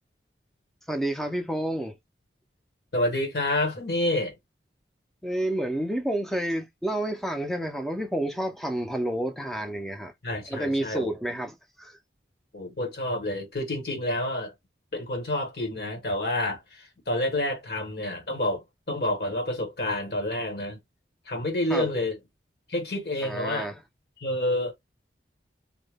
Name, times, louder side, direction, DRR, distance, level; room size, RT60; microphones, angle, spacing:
voice 1, 0.9-1.9 5.2-10.1 10.5-12.0 21.7-21.9 23.2-23.8, right 1 dB, ahead, 0.3 m, -29 dB
voice 2, 2.9-4.3 10.2-11.1 12.5-14.5 14.9-20.8 21.3-22.2 22.7-23.7 24.2-24.7, left 1 dB, 60° left, 1.0 m, -28 dB
2.1 x 2.0 x 3.3 m
head